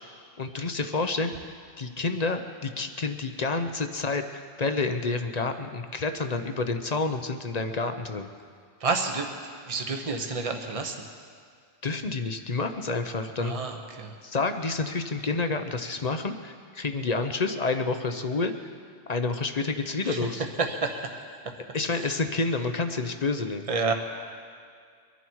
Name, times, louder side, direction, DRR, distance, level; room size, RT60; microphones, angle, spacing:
voice 1, 0.4-1.3 1.8-8.3 11.8-13.6 14.2-18.5 19.1-20.4 21.7-23.7, left 3 dB, 40° left, 7 dB, 0.8 m, -29 dB
voice 2, 8.8-9.3 9.6-11.0 13.4-14.1 20.0-20.2 20.6-21.1 21.4-21.6 21.9-22.1 23.7-23.9, right 4 dB, 30° right, 4 dB, 1.2 m, -29 dB
23.5 x 11.0 x 4.6 m, 2.1 s
omnidirectional pair, 1.3 m